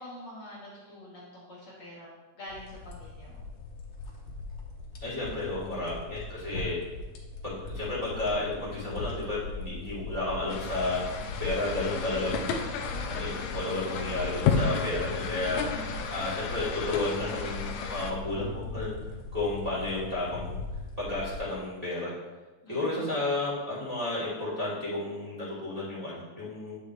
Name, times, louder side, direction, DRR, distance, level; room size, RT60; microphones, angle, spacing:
voice 1, 0.0-2.1 2.3-3.4 7.8-7.9 15.6-16.0 22.6-23.1, left 1 dB, 50° left, -6 dB, 2.7 m, -45 dB
sound 1, 2.5-21.5, left 3 dB, 90° left, 2.6 m, -39 dB
voice 2, 5.0-6.8 7.4-11.0 11.4-12.5 13.1-15.6 16.1-19.0 19.3-20.6 21.0-22.1 22.7-26.8, left 2 dB, 10° right, -9 dB, 2.7 m, -32 dB
sound 2, 10.5-18.1, left 5 dB, 75° left, 1.9 m, -33 dB
9.9 x 6.7 x 3.2 m, 1.2 s
omnidirectional pair, 3.5 m